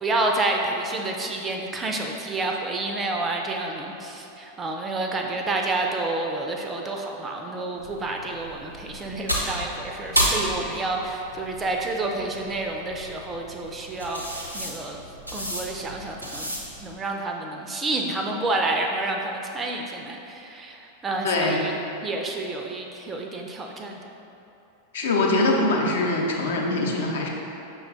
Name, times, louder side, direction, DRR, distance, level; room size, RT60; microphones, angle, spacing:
voice 1, 0.0-14.2 14.5-15.0 15.3-16.5 16.8-21.7 22.0-24.0, right 2 dB, 20° right, 2 dB, 0.4 m, -29 dB
sound 1, 7.8-16.9, equal, 90° right, 0.6 m, -32 dB
voice 2, 21.2-21.6 24.9-27.3, left 2 dB, 60° left, -1 dB, 0.6 m, -23 dB
5.8 x 2.2 x 3.8 m, 2.8 s
figure-of-eight pair, 90°, 0 cm